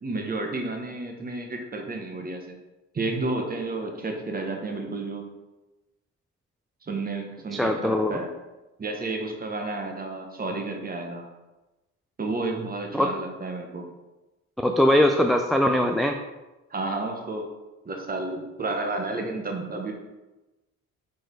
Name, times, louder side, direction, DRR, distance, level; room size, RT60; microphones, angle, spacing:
voice 1, 0.0-2.6 2.9-5.3 6.8-8.3 8.8-11.3 12.2-13.9 16.7-17.5 17.8-19.9, right 2 dB, 30° right, 3 dB, 1.1 m, -31 dB
voice 2, 7.5-8.2 12.9-13.1 14.6-16.2, left 1 dB, ahead, 3 dB, 0.3 m, -21 dB
4.9 x 4.3 x 4.5 m, 1.1 s
cardioid pair, 90°, 30 cm